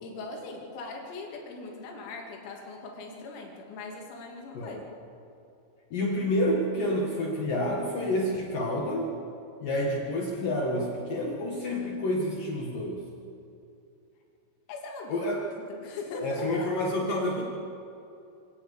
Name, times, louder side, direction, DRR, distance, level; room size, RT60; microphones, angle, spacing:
voice 1, 0.0-4.8 14.7-15.3 15.7-16.7 17.1-17.4, left 3 dB, 90° left, 0 dB, 5.5 m, -40 dB
voice 2, 5.9-9.1 9.6-13.0 15.1-15.4 16.2-17.4, left 1 dB, 55° left, -1 dB, 2.8 m, -29 dB
25.5 x 18.0 x 6.9 m, 2.6 s
omnidirectional pair, 5.9 m